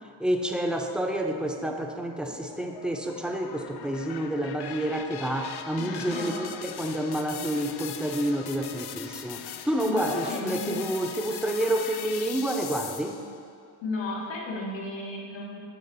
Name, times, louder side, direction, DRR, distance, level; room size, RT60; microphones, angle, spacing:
voice 1, 0.2-13.2, right 1 dB, ahead, 3 dB, 0.6 m, -29 dB
sound 1, 2.3-13.4, left 9 dB, 60° left, 0.5 m, -40 dB
voice 2, 5.8-6.4 8.8-9.0 9.9-10.8 13.8-15.6, left 2 dB, 80° left, -4 dB, 1.9 m, -33 dB
9.6 x 3.6 x 6.9 m, 2.3 s
cardioid pair, 110°, 43 cm